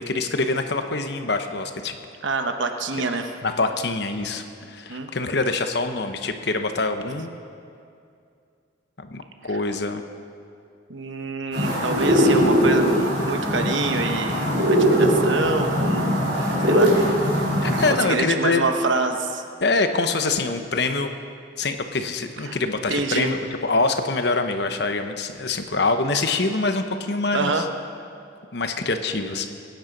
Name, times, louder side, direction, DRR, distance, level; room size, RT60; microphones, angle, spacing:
voice 1, 0.1-2.0 3.4-7.3 9.0-10.0 17.0-17.1 17.6-18.6 19.6-21.1 21.6-27.6 28.5-29.5, left 3 dB, 60° left, 7 dB, 1.0 m, -25 dB
voice 2, 2.2-3.3 4.9-5.1 10.9-16.1 16.6-16.9 18.0-19.4 22.4-22.6 22.9-23.3 27.3-27.7, right 3 dB, 75° right, 5 dB, 1.1 m, -26 dB
sound 1, 11.5-17.9, equal, 60° right, 3.9 m, -20 dB
23.0 x 9.5 x 5.3 m, 2.4 s
head